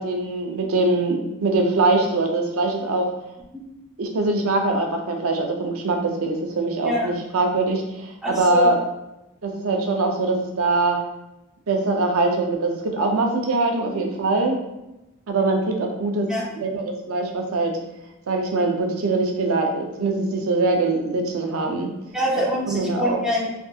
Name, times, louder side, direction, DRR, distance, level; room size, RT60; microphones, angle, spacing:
voice 1, 0.0-3.1 4.0-8.8 9.4-11.0 11.7-14.6 15.3-16.3 16.5-17.8 18.3-21.9 22.7-23.2, right 2 dB, 70° right, 2 dB, 0.5 m, -22 dB
voice 2, 8.2-8.8 13.9-14.0 16.3-16.5 21.7-21.8 22.1-23.5, equal, 5° right, -6 dB, 0.7 m, -25 dB
3.3 x 2.7 x 2.3 m, 0.94 s
head